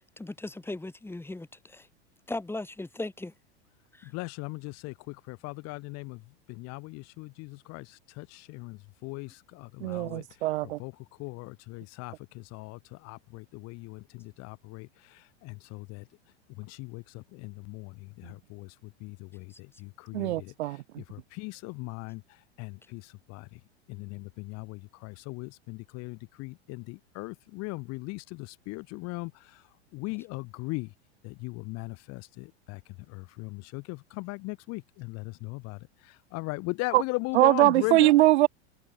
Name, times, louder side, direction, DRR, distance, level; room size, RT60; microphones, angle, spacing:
voice 1, 0.2-1.9 2.3-3.3 3.9-4.1 19.5-19.6, left 2 dB, 5° left, 5.6 m, -37 dB
voice 2, 4.0-6.2 6.5-10.5 10.8-16.1 16.5-23.6 23.9-30.9 31.2-38.1, left 25 dB, 45° left, 1.6 m, -39 dB
voice 3, 9.8-10.8 20.1-20.8 36.9-37.0 37.3-38.5, right 17 dB, 70° right, 1.5 m, -22 dB
hypercardioid pair, 120°, 34 cm